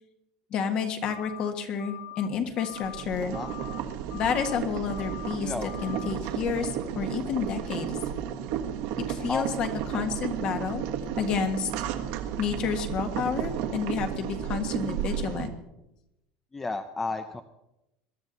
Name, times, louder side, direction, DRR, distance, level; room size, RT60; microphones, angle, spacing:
voice 1, 0.5-3.3 4.1-5.5 5.8-8.0 9.0-10.8 11.2-11.7 12.4-15.5, left 6 dB, 40° left, 7 dB, 1.7 m, -30 dB
sound 1, 1.0-1.5 1.8-2.3 2.6-3.0 3.3-3.8 4.1-4.6 4.9-5.4 5.6-6.1, left 16 dB, 85° left, 1.0 m, -43 dB
Boiling, 2.7-15.5, right 9 dB, 65° right, 1.5 m, -33 dB
voice 2, 3.2-3.5 5.4-5.7 9.3-9.4 16.5-17.4, left 3 dB, 10° left, 9 dB, 0.6 m, -32 dB
21.5 x 12.0 x 4.1 m, 0.92 s
cardioid pair, 160°, 3 cm